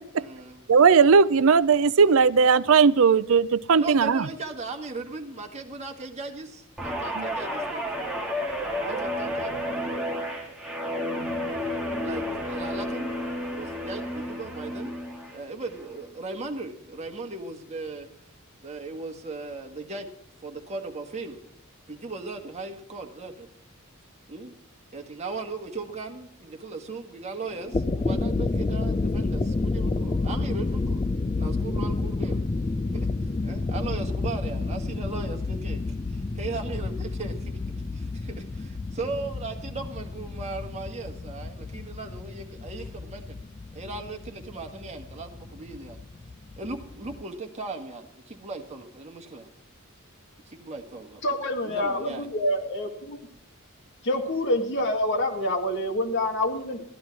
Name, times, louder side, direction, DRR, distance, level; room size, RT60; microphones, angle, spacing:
voice 1, 0.2-0.6 3.8-8.4 8.8-10.8 11.5-13.1 13.5-14.9 15.3-18.1 18.6-20.1 20.4-21.4 21.9-23.5 24.3-24.5 24.9-31.0 31.4-32.4 32.9-33.1 33.4-35.8 36.1-37.5 37.9-43.4 43.7-46.0 46.6-49.5 50.5-51.2 51.6-52.3, right 3 dB, 30° right, 2 dB, 1.6 m, -37 dB
voice 2, 0.7-4.3 7.1-7.3, right 5 dB, 70° right, 16 dB, 0.5 m, -18 dB
Guitar, 6.8-15.4 15.8-16.1, equal, 5° right, 1.9 m, -31 dB
sound 1, 27.5-47.2, left 3 dB, 25° left, 0.4 m, -30 dB
voice 3, 51.2-53.2 54.0-56.8, left 1 dB, 60° left, 4 dB, 1.9 m, -27 dB
13.5 x 11.0 x 4.6 m, 0.73 s
head